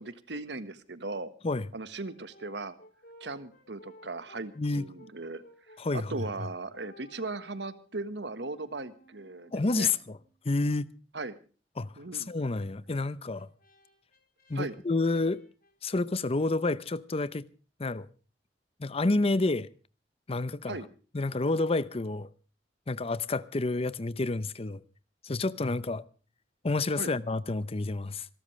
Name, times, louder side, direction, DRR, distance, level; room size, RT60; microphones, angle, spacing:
voice 1, 0.0-1.3 1.7-2.8 3.2-5.4 5.7-9.9 11.1-11.4 12.0-12.3 14.5-14.7 20.7-20.9 27.0-27.1, right 3 dB, 75° right, 1.4 m, -38 dB
Brass instrument, 2.0-10.4 12.9-16.5, equal, 55° left, 3.6 m, -57 dB
voice 2, 4.6-4.9 5.8-6.2 9.5-10.2 10.4-10.9 11.8-13.5 14.5-15.4 15.8-17.5 17.8-18.1 18.8-19.7 20.3-20.8 21.1-22.3 22.9-24.8 25.2-26.0 26.6-28.3, left 3 dB, 35° left, 0.7 m, -29 dB
26.5 x 13.0 x 3.2 m
head